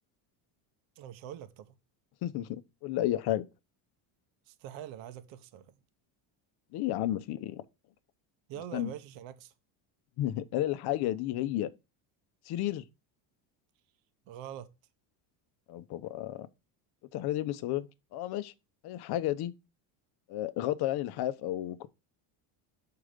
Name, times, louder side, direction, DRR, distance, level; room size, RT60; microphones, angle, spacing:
voice 1, 1.0-1.7 4.5-5.7 8.5-9.5 14.3-14.7, right 10 dB, 65° right, 0.9 m, -44 dB
voice 2, 2.2-3.5 6.7-7.6 8.7-8.9 10.2-11.7 12.5-12.8 15.7-16.5 17.1-18.5 18.8-19.5 20.3-21.9, left 13 dB, 50° left, 0.7 m, -32 dB
6.4 x 4.7 x 5.0 m
cardioid pair, 140°, 49 cm